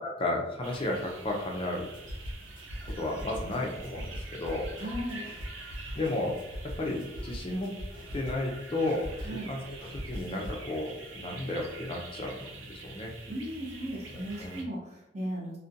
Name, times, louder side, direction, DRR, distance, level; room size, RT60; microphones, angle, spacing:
voice 1, 0.0-1.9 3.0-4.7 5.9-6.4 6.6-7.7 8.1-13.1 14.4-14.6, left 2 dB, 25° left, 0 dB, 0.4 m, -33 dB
sound 1, 0.6-14.6, right 3 dB, 70° right, 0.5 m, -46 dB
sound 2, 1.9-8.6 8.9-10.7, equal, 45° left, 0.8 m, -41 dB
voice 2, 4.7-5.3 9.2-9.5 13.3-15.6, equal, 35° right, -5 dB, 0.7 m, -36 dB
2.4 x 2.1 x 2.7 m, 0.88 s
head